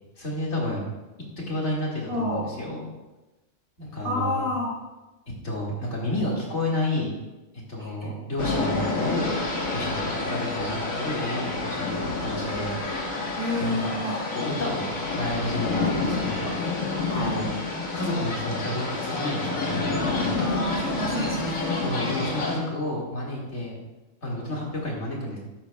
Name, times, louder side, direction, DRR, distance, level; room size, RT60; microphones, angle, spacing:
voice 1, 0.2-0.9 1.5-2.8 3.8-4.5 5.4-7.1 7.7-9.3 9.7-12.7 13.6-14.0 14.3-14.9 15.2-16.5 17.1-17.5 17.9-20.5 21.1-21.3 21.8-23.8 24.2-25.4, left 1 dB, 55° left, -3 dB, 2.4 m, -30 dB
voice 2, 2.1-2.5 4.0-4.8 7.8-8.1 13.4-14.2 17.0-17.3 20.3-21.9, left 1 dB, 25° right, -6 dB, 2.5 m, -30 dB
sound 1, 8.4-22.6, left 3 dB, 75° left, 1.9 m, -28 dB
12.5 x 8.9 x 2.3 m, 1.1 s
omnidirectional pair, 1.4 m